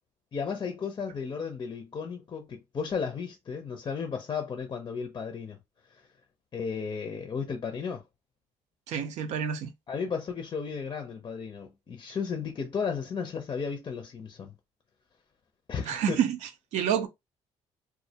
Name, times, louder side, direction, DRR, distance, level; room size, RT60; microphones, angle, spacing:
voice 1, 0.3-5.6 6.5-8.0 9.9-14.5 15.7-16.2, left 6 dB, 35° left, 0.5 m, -34 dB
voice 2, 8.9-9.7 15.8-16.4 16.7-17.1, right 8 dB, 85° right, 0.5 m, -28 dB
2.3 x 2.1 x 2.7 m
cardioid pair, 90°, 12 cm